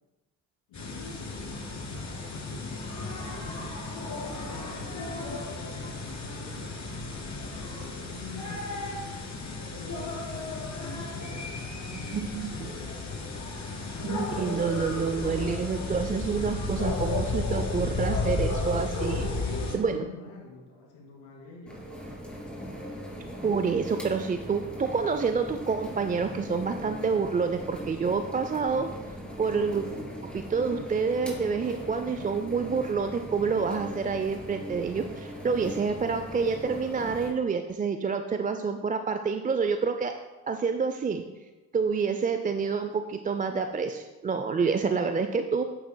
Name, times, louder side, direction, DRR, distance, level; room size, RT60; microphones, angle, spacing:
voice 1, 0.7-1.9 2.3-3.9 4.5-9.3 9.7-10.5 10.8-13.6 19.3-21.9, left 3 dB, 75° left, -2 dB, 2.7 m, -47 dB
sound 1, 0.7-19.8, left 3 dB, 35° left, 2.3 m, -34 dB
voice 2, 12.1-12.7 14.0-19.3 19.7-20.0 23.4-28.9 29.4-29.8 30.3-40.1 40.5-41.2 41.7-45.6, right 5 dB, 20° right, 7 dB, 0.4 m, -28 dB
sound 2, 21.7-37.3, equal, ahead, 2.7 m, -40 dB
9.3 x 8.2 x 2.2 m, 1.2 s
supercardioid pair, 65°, 46 cm